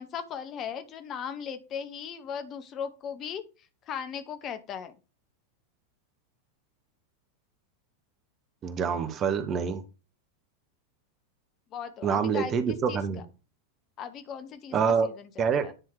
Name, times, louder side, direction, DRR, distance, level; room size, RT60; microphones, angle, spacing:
voice 1, 0.0-3.4 3.9-5.0 11.7-12.5 12.9-13.2 14.0-15.7, left 7 dB, 30° left, 10 dB, 0.9 m, -38 dB
voice 2, 8.6-9.8 12.0-13.2 14.7-15.1 15.4-15.7, right 6 dB, 30° right, 10 dB, 1.0 m, -26 dB
10.0 x 3.7 x 4.7 m, 0.31 s
figure-of-eight pair, 90°, 0 cm